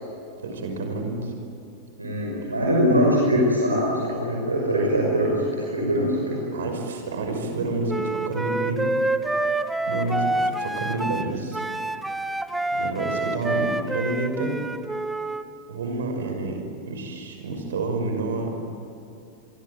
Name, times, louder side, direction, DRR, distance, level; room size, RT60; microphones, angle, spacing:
voice 1, 0.4-1.3 2.4-2.5 6.5-8.9 9.9-11.6 12.7-14.6 15.7-18.7, right 3 dB, 65° right, 4 dB, 5.9 m, -29 dB
voice 2, 2.0-6.4, equal, 80° right, -3 dB, 6.1 m, -22 dB
Wind instrument woodwind instrument, 7.9-15.4, right 2 dB, 5° right, 1.3 m, -27 dB
28.0 x 23.5 x 9.0 m, 2.8 s
figure-of-eight pair, 90°, 0 cm